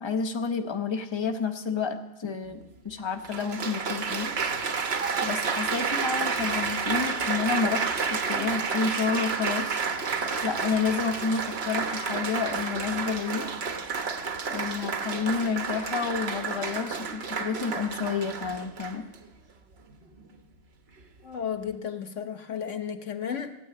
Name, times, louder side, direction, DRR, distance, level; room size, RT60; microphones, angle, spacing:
voice 1, 0.0-4.3 5.2-9.8 10.4-13.5 14.5-19.1, left 5 dB, 25° left, 6 dB, 1.0 m, -30 dB
Applause, 2.5-2.6 3.2-19.2 19.9-20.2, right 5 dB, 60° right, 1.3 m, -30 dB
voice 2, 21.2-23.5, left 8 dB, 80° left, 7 dB, 1.4 m, -33 dB
16.0 x 9.3 x 8.6 m, 1.0 s
omnidirectional pair, 1.2 m